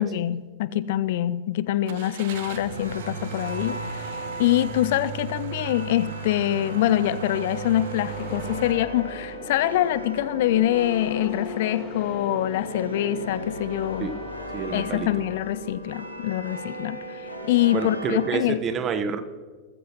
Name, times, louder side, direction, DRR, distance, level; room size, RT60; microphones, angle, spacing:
voice 1, 0.0-14.1 14.7-18.6, left 13 dB, 55° left, 17 dB, 0.4 m, -25 dB
Car / Engine starting, 1.9-8.7, right 7 dB, 55° right, 1.1 m, -37 dB
sound 1, 2.5-18.4, right 1 dB, 90° right, 1.8 m, -38 dB
sound 2, 8.1-16.0, left 4 dB, 25° left, 2.4 m, -39 dB
voice 2, 14.5-15.1 17.7-19.2, right 6 dB, 25° right, 9 dB, 1.2 m, -28 dB
20.0 x 14.5 x 3.0 m, 1.5 s
figure-of-eight pair, 90°, 0 cm